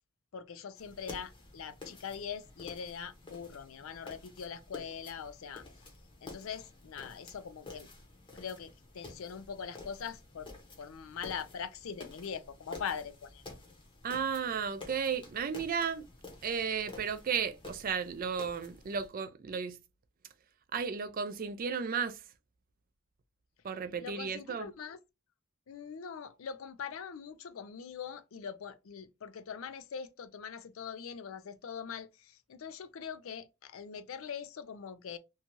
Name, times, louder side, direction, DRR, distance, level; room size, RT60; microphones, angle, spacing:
voice 1, 0.3-5.6 6.2-7.9 8.3-10.5 10.8-13.4 24.0-25.0 25.7-35.2, left 7 dB, 70° left, 0.4 m, -42 dB
sound 1, 0.7-19.1, left 3 dB, 25° left, 0.8 m, -51 dB
voice 2, 14.0-16.1 16.4-19.8 20.7-22.2 23.6-24.7, right 6 dB, 40° right, 0.4 m, -34 dB
2.7 x 2.3 x 2.9 m
head